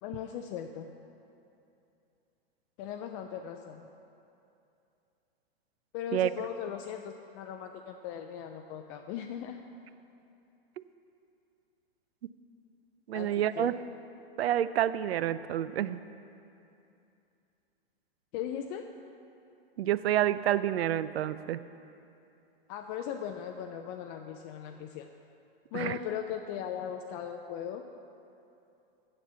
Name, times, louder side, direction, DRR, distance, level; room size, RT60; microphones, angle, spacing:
voice 1, 0.0-0.9 2.8-3.9 5.9-9.6 13.1-13.8 18.3-18.9 22.7-25.1 25.7-27.8, left 9 dB, 35° left, 5 dB, 0.4 m, -38 dB
voice 2, 13.1-13.7 14.4-16.0 19.8-21.6 25.7-26.0, right 12 dB, 85° right, 15 dB, 0.5 m, -28 dB
7.6 x 7.2 x 6.9 m, 2.7 s
hypercardioid pair, 125°, 30 cm